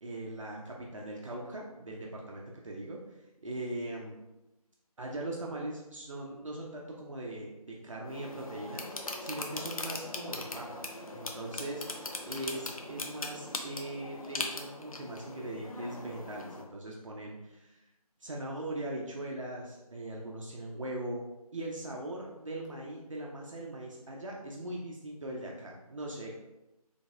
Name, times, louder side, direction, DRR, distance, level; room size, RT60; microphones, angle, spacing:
voice 1, 0.0-4.2 5.0-10.9 11.1-17.8 18.2-21.3 21.5-26.4, right 1 dB, 55° right, -2 dB, 0.6 m, -40 dB
sound 1, 8.0-16.6, left 2 dB, 65° left, 0.6 m, -40 dB
3.8 x 3.4 x 2.4 m, 0.98 s
figure-of-eight pair, 165°, 20 cm